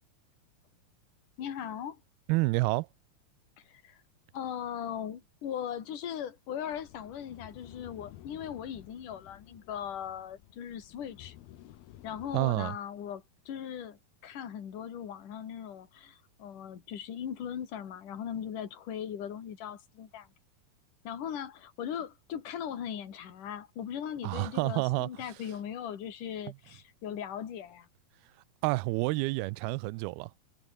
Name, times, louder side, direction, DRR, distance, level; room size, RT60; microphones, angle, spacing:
voice 1, 1.4-2.0 3.7-4.0 4.3-11.4 12.0-20.3 21.0-27.9, left 9 dB, 60° left, 4.0 m, -39 dB
voice 2, 2.3-2.9 12.3-12.8 24.2-25.1 28.6-30.3, right 23 dB, 90° right, 2.5 m, -29 dB
sound 1, 6.7-12.4, left 14 dB, 80° left, 3.1 m, -53 dB
omnidirectional pair, 4.3 m